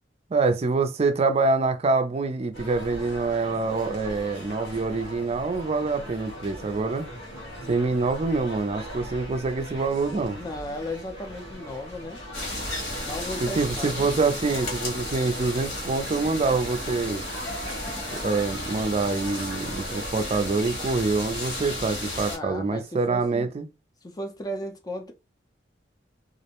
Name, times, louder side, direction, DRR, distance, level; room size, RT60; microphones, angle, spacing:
voice 1, 0.3-7.1 7.7-10.4 13.4-17.2 18.1-23.7, right 3 dB, 35° right, 0.4 m, -25 dB
sound 1, 2.5-20.1, equal, 80° left, 1.0 m, -40 dB
voice 2, 10.4-12.2 13.0-14.1 22.2-23.5 24.0-25.1, left 1 dB, 20° left, 0.5 m, -35 dB
sound 2, 12.3-22.4, left 1 dB, 65° left, 1.2 m, -33 dB
2.5 x 2.1 x 2.8 m
head